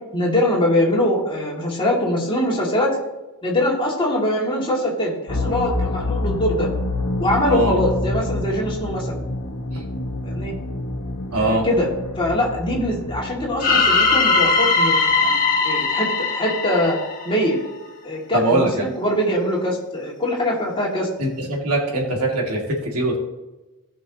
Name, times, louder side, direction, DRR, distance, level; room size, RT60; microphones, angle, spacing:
voice 1, 0.1-3.0 3.4-6.7 7.2-9.2 10.2-10.5 11.3-11.9 12.2-17.0 17.2-17.6 18.0-21.1, left 1 dB, 25° left, -3 dB, 2.4 m, -22 dB
sound 1, 5.3-15.1, left 2 dB, 85° left, 1.3 m, -28 dB
voice 2, 11.3-11.7 18.3-18.9 21.2-23.2, right 2 dB, 85° right, 0 dB, 2.3 m, -22 dB
sound 2, 13.6-17.7, left 4 dB, 40° left, 1.4 m, -19 dB
17.5 x 5.9 x 3.0 m, 1.1 s
head